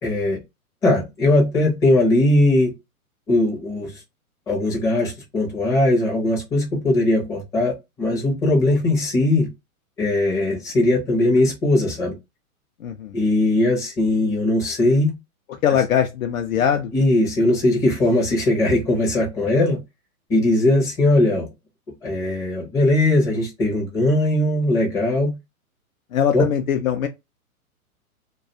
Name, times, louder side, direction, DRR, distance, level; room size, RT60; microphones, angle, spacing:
voice 1, 0.0-0.4 0.8-2.7 3.3-3.9 4.5-9.5 10.0-12.2 13.1-15.1 16.9-19.8 20.3-21.5 22.0-25.3 26.3-26.4, left 1 dB, 10° left, 0.5 m, -19 dB
voice 2, 12.8-13.2 15.6-16.9 26.1-27.1, left 9 dB, 65° left, 0.5 m, -21 dB
2.4 x 2.3 x 2.5 m
figure-of-eight pair, 115°, 44 cm